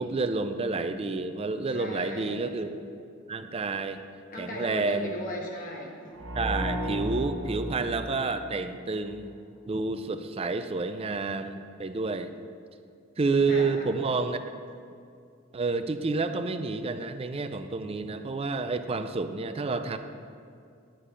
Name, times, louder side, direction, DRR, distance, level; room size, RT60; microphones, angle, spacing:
voice 1, 0.0-2.7 3.3-4.0 4.4-5.1 6.3-9.3 9.6-12.3 13.2-14.4 15.5-20.0, right 3 dB, 30° right, 9 dB, 0.4 m, -29 dB
voice 2, 1.7-2.5 4.3-6.2 13.5-13.9, left 1 dB, 45° left, 0 dB, 1.4 m, -37 dB
sound 1, 6.2-9.0, right 1 dB, 80° right, 1.2 m, -34 dB
10.0 x 9.7 x 3.2 m, 2.4 s
head